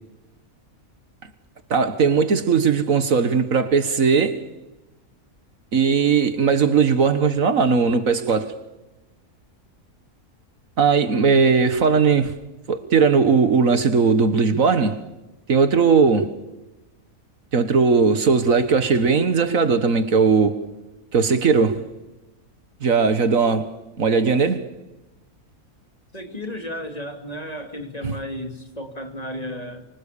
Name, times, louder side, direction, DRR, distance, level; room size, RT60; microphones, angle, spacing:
voice 1, 1.7-4.4 5.7-8.6 10.8-12.4 12.7-15.0 15.5-16.4 17.5-20.7 21.1-21.9 22.8-24.7, right 5 dB, 65° right, 1.8 m, -18 dB
voice 2, 26.1-29.8, equal, 25° left, 3.0 m, -33 dB
25.5 x 25.0 x 6.9 m
omnidirectional pair, 1.5 m